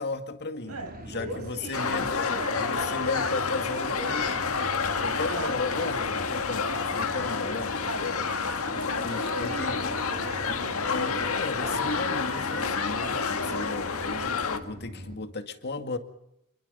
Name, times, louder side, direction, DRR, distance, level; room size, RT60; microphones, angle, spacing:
voice 1, 0.0-0.7 1.1-2.1 2.6-4.4 5.0-7.8 9.0-9.8 10.9-16.0, left 3 dB, 50° left, 7 dB, 2.1 m, -35 dB
sound 1, 0.7-15.2, equal, 40° right, 2.9 m, -43 dB
voice 2, 0.7-4.5 5.3-6.0 7.8-8.2 8.9-10.8 13.4-13.7, right 2 dB, 80° right, 5 dB, 7.4 m, -40 dB
sound 2, 1.7-14.6, left 5 dB, 70° left, 1.9 m, -29 dB
28.0 x 22.5 x 5.6 m, 0.79 s
head